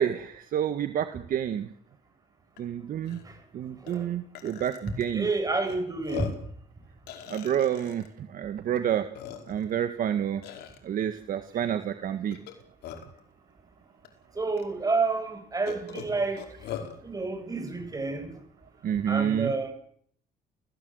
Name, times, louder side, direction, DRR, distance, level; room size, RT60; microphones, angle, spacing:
voice 1, 0.0-1.6 2.6-3.2 3.5-5.3 7.3-9.1 9.5-10.4 10.8-12.4 18.8-19.5, right 9 dB, 55° right, 9 dB, 1.6 m, -29 dB
Burping eructation, 2.6-2.7 3.0-3.2 3.9-4.0 4.3-5.0 5.7-5.8 6.0-6.5 7.1-8.1 8.8-8.9 9.1-9.7 10.4-10.8 12.3-13.2 14.0-14.1 14.6-14.7 15.7-16.9, left 9 dB, 75° left, 4.9 m, -40 dB
voice 2, 5.1-6.3 14.4-16.4 17.0-18.3 19.1-19.7, right 3 dB, 20° right, 7 dB, 7.5 m, -29 dB
29.0 x 17.0 x 8.0 m, 0.64 s
cardioid pair, 110°, 17 cm